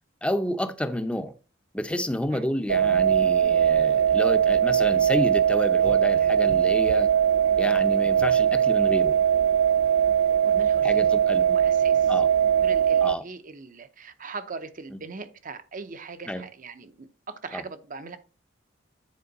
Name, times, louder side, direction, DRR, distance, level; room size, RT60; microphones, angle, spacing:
voice 1, 0.2-1.3 1.7-7.1 7.6-9.1 10.8-11.4 12.1-12.3 13.0-13.2 16.3-16.4 17.5-17.6, left 1 dB, 5° left, 0.6 m, -29 dB
sound 1, 2.7-13.1, right 9 dB, 85° right, 0.3 m, -21 dB
voice 2, 10.4-11.0 11.5-12.2 12.6-18.2, right 4 dB, 45° right, 0.7 m, -40 dB
9.6 x 4.4 x 4.0 m
head